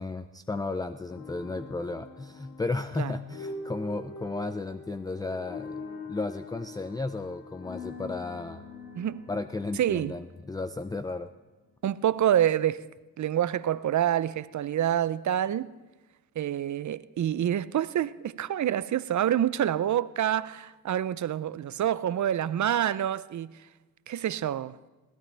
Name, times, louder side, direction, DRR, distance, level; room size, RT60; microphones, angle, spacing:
voice 1, 0.0-8.6 9.3-11.3, left 3 dB, 10° left, 0.4 m, -34 dB
sound 1, 1.1-11.2, left 3 dB, 85° left, 1.8 m, -43 dB
voice 2, 9.8-10.1 11.8-12.9 13.2-15.7 16.4-23.6 24.1-24.8, right 11 dB, 50° right, 0.6 m, -27 dB
21.5 x 16.5 x 3.4 m
cardioid pair, 75°, 37 cm